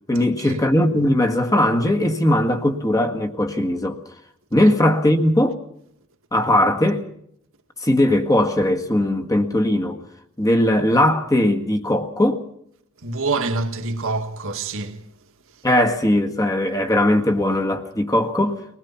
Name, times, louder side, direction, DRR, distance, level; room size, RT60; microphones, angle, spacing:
voice 1, 0.1-4.0 4.5-5.6 6.3-7.0 7.8-10.0 10.4-12.4 15.6-18.6, left 1 dB, 15° left, 1.7 m, -19 dB
voice 2, 13.0-15.0, right 3 dB, 60° right, 2.0 m, -26 dB
23.5 x 19.5 x 5.8 m
head